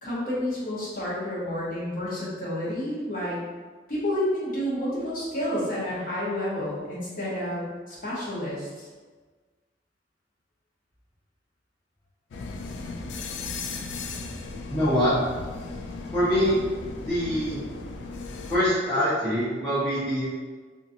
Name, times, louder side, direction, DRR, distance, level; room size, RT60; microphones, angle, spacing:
voice 1, 0.0-3.4 3.9-8.7, left 1 dB, 50° left, -8 dB, 1.0 m, -30 dB
sound 1, 12.3-18.6, left 3 dB, 75° left, 0.3 m, -36 dB
voice 2, 14.7-15.1 16.1-16.6 17.1-17.6 18.5-20.2, equal, 20° left, -14 dB, 0.8 m, -24 dB
2.8 x 2.5 x 2.6 m, 1.4 s
head